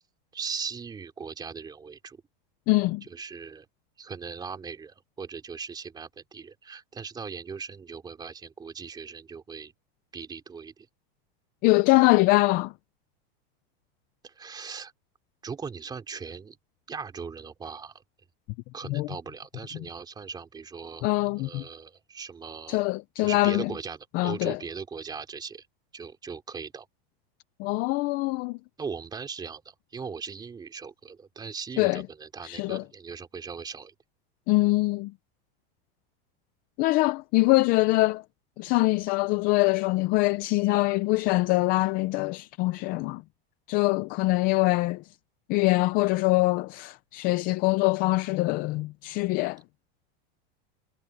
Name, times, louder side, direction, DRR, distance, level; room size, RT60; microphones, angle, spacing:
voice 1, 0.3-2.2 3.1-3.7 4.0-9.7 10.1-10.9 14.2-14.9 15.4-16.6 16.9-17.9 18.7-22.8 23.2-25.7 25.9-26.9 28.8-33.9, right 5 dB, 15° right, 2.9 m, -39 dB
voice 2, 2.7-3.0 11.6-12.7 18.9-19.1 21.0-21.6 22.7-23.7 24.1-24.6 27.6-28.6 31.8-32.0 32.4-32.8 34.5-35.1 36.8-38.2 38.6-43.2 43.7-45.0 45.5-49.6, left 21 dB, 30° left, 0.4 m, -23 dB
supercardioid pair, 165°, 30 cm